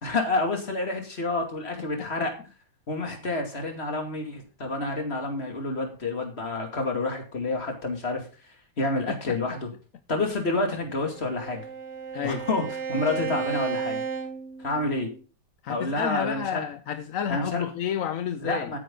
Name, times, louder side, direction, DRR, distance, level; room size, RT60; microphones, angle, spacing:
voice 1, 0.0-2.3 2.9-8.3 8.8-9.7 10.1-11.6 12.2-14.0 14.6-15.1 15.7-16.6 17.3-17.6 18.4-18.8, left 2 dB, 35° left, 2.8 m, -29 dB
voice 2, 1.8-2.3 9.1-9.4 12.1-12.5 15.6-18.7, left 8 dB, 60° left, 0.9 m, -31 dB
Bowed string instrument, 10.8-15.2, right 6 dB, 40° right, 1.6 m, -34 dB
13.0 x 9.9 x 3.8 m
omnidirectional pair, 2.0 m